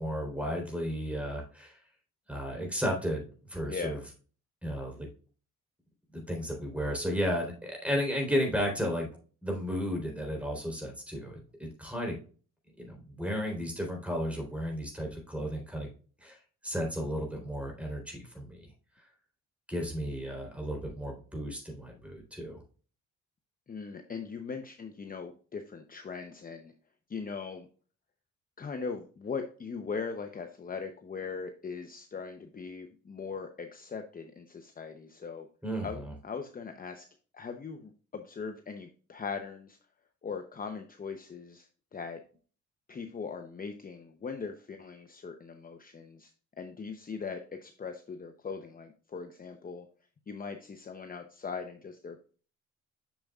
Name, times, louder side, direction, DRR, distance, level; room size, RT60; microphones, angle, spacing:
voice 1, 0.0-1.8 2.3-4.0 4.6-5.1 6.3-9.1 9.4-12.2 12.8-15.9 16.2-16.4 16.6-18.7 19.7-22.6 35.6-36.1, equal, 5° right, 0 dB, 3.7 m, -33 dB
voice 2, 23.7-26.7 27.1-27.7 28.6-35.5 35.8-37.1 37.3-39.8 40.2-42.2 42.9-46.3 46.6-49.9 50.3-52.2, left 5 dB, 30° left, 6 dB, 0.8 m, -40 dB
7.1 x 6.8 x 2.4 m, 0.39 s
cardioid pair, 90°, 30 cm